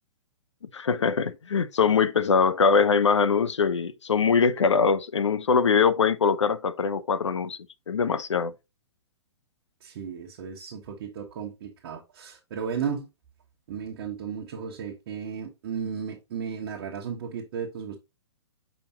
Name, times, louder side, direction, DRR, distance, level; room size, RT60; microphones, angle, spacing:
voice 1, 0.7-7.6 7.9-8.5, left 5 dB, 80° left, 0.6 m, -22 dB
voice 2, 9.8-13.1 13.7-18.0, right 7 dB, 50° right, 1.2 m, -34 dB
7.0 x 5.1 x 2.8 m
figure-of-eight pair, 120°, 15 cm